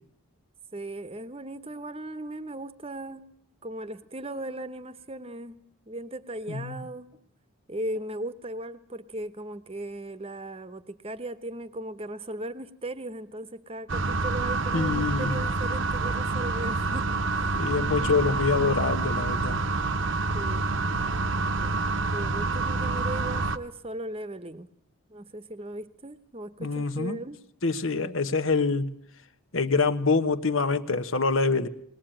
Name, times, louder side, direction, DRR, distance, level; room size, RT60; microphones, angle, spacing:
voice 1, 0.7-3.3 3.6-5.6 5.9-7.2 7.7-18.7 20.3-20.7 21.6-21.8 22.1-24.7 25.1-27.4, right 1 dB, 25° right, 14 dB, 1.0 m, -38 dB
voice 2, 6.5-6.8 14.7-15.4 17.5-19.7 26.6-27.2 27.6-28.9 29.5-31.7, left 4 dB, 60° left, 11 dB, 1.2 m, -25 dB
sound 1, 13.9-23.6, right 3 dB, 55° right, 0.9 m, -27 dB
20.5 x 20.0 x 9.0 m, 0.68 s
head